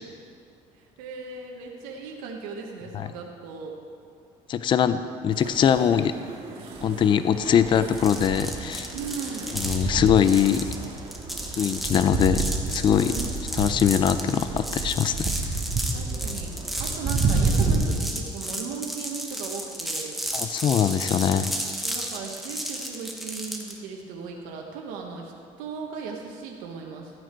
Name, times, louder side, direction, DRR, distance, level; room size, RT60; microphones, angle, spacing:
voice 1, 0.7-3.8 8.9-9.6 12.9-13.3 15.9-20.2 21.8-25.3 25.6-27.1, right 5 dB, 90° right, 0 dB, 1.3 m, -37 dB
voice 2, 4.5-6.1 6.8-8.9 9.5-10.7 11.6-13.1 13.5-15.3 20.3-21.5, left 8 dB, 35° left, 12 dB, 0.5 m, -22 dB
sound 1, 5.3-17.7, right 4 dB, 45° right, 1.8 m, -30 dB
sound 2, 8.0-23.8, right 1 dB, ahead, 1.1 m, -33 dB
13.5 x 9.0 x 4.5 m, 2.2 s
cardioid pair, 130°, 14 cm